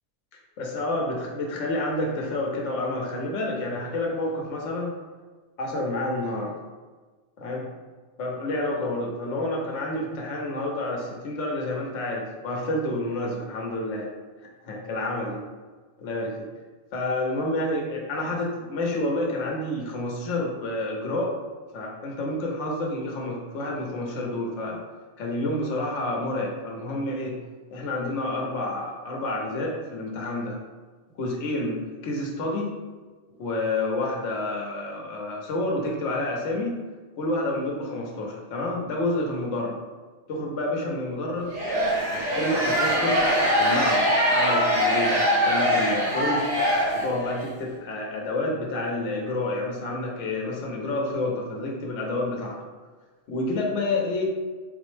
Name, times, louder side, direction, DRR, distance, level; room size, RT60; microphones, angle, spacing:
voice 1, 0.6-4.9 5.6-6.5 7.4-7.6 8.2-14.1 14.7-15.4 16.0-16.3 16.9-21.3 21.7-24.8 25.2-27.4 27.7-30.6 31.1-32.7 33.4-36.7 37.2-39.8 40.3-41.5 42.1-43.2 43.6-46.5 46.9-52.6 53.3-54.2, left 2 dB, 85° left, -1 dB, 1.0 m, -29 dB
sound 1, 41.5-47.4, equal, 85° right, 1.2 m, -23 dB
3.8 x 2.0 x 3.1 m, 1.4 s
omnidirectional pair, 1.2 m